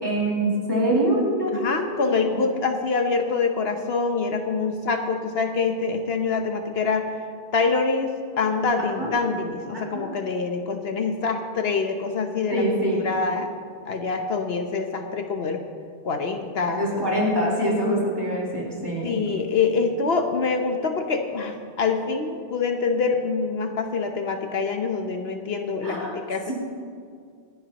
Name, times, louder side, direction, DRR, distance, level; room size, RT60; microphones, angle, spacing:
voice 1, 0.0-1.8 2.3-2.5 8.8-9.1 9.7-10.1 12.5-13.1 16.7-19.2 25.8-26.2, right 1 dB, 20° right, -5 dB, 4.0 m, -24 dB
voice 2, 1.5-7.0 7.5-12.6 12.9-13.5 13.9-15.6 16.0-17.0 19.0-26.5, left 4 dB, 70° left, 5 dB, 1.1 m, -25 dB
26.5 x 10.0 x 2.9 m, 2.2 s
omnidirectional pair, 1.1 m